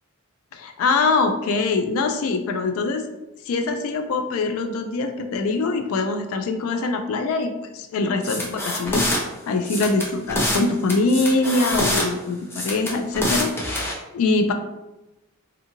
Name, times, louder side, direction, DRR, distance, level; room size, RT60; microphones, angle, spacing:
voice 1, 0.5-3.1 3.5-9.1 9.5-14.5, left 3 dB, 85° left, 6 dB, 0.3 m, -23 dB
sound 1, 8.2-9.2 9.6-10.6 10.9-12.1 12.5-13.9, left 1 dB, 10° left, 0.5 m, -25 dB
2.6 x 2.4 x 2.8 m, 0.99 s
head